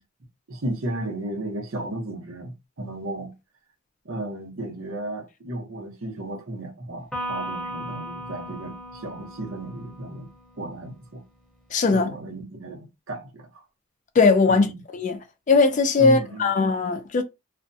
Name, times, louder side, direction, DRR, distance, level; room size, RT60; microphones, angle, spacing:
voice 1, 0.5-3.4 4.0-10.3 10.6-11.2 11.9-13.6 14.5-14.8 16.0-16.7, right 1 dB, 75° right, 0.9 m, -34 dB
Electric guitar, 7.1-10.7, right 1 dB, 5° left, 0.7 m, -36 dB
voice 2, 11.7-12.1 14.2-15.2 15.5-17.2, left 4 dB, 35° left, 0.3 m, -19 dB
2.4 x 2.1 x 2.6 m
head